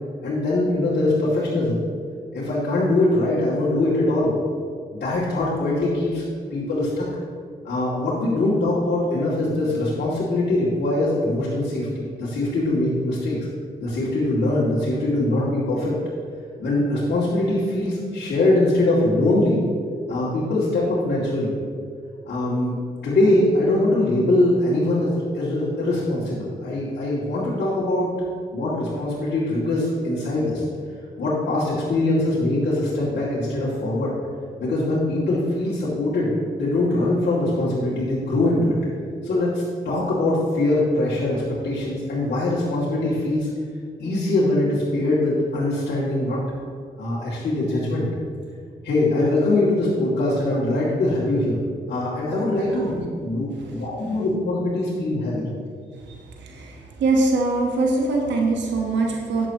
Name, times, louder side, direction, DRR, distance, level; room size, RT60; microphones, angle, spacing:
voice 1, 0.2-1.8 2.3-4.3 4.9-7.0 7.6-13.4 13.8-15.9 16.6-19.6 20.1-21.5 22.3-22.7 23.0-28.1 28.5-30.6 31.2-34.1 34.6-38.8 39.2-39.5 39.8-43.5 44.0-46.4 47.0-48.1 48.8-51.6 51.9-55.4, left 2 dB, 65° left, -9 dB, 2.5 m, -22 dB
voice 2, 57.0-59.5, right 3 dB, 80° right, 0 dB, 1.3 m, -22 dB
11.0 x 8.5 x 3.0 m, 2.1 s
supercardioid pair, 45°, 18 cm